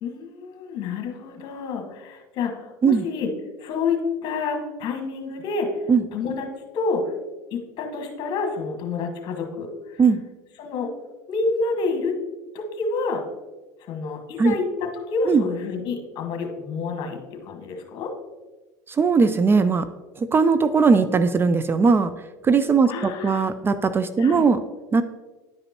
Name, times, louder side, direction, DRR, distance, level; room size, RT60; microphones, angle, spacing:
voice 1, 0.0-3.3 3.6-7.1 7.5-10.0 10.6-10.9 11.3-12.2 12.5-13.2 13.8-18.1 22.8-23.4 24.2-24.5, left 4 dB, 55° left, 3 dB, 1.5 m, -28 dB
voice 2, 18.9-19.9 20.2-22.1 22.4-24.6 24.9-25.0, right 5 dB, 25° right, 12 dB, 0.4 m, -19 dB
10.5 x 5.1 x 2.9 m, 1.2 s
hypercardioid pair, 90°, 10 cm